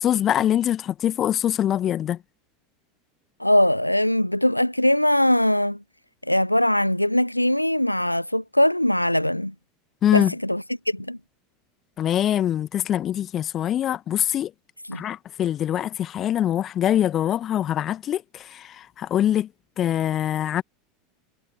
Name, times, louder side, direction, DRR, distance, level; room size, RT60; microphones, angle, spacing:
voice 1, 0.0-2.2 10.0-10.3 12.0-14.5 14.9-18.2 18.5-18.6 19.0-19.5 19.8-20.6, left 11 dB, 35° left, 1.7 m, -23 dB
voice 2, 3.4-5.8 6.3-9.5 10.1-11.2 14.9-15.0, left 1 dB, 90° left, 0.5 m, -21 dB
figure-of-eight pair, 80°, 0 cm